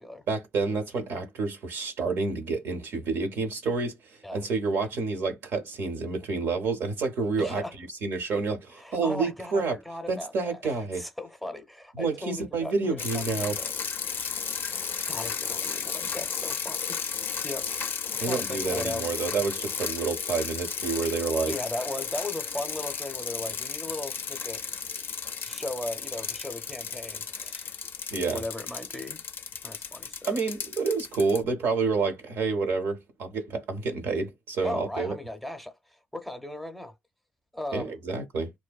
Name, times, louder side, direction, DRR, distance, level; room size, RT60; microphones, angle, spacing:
voice 1, 0.3-9.8 10.1-11.0 11.9-13.6 18.2-21.5 28.1-28.4 30.3-35.2 37.7-38.5, right 4 dB, 65° right, 0.7 m, -29 dB
voice 2, 7.4-7.7 8.7-13.7 14.7-17.0 17.4-17.8 18.1-19.4 21.5-24.6 25.4-27.8 28.3-29.2 29.6-30.4 34.6-36.9 37.5-38.0, left 1 dB, ahead, 0.6 m, -37 dB
sound 1, 13.0-31.4, left 6 dB, 50° left, 0.4 m, -34 dB
2.6 x 2.1 x 2.3 m
hypercardioid pair, 55°, 4 cm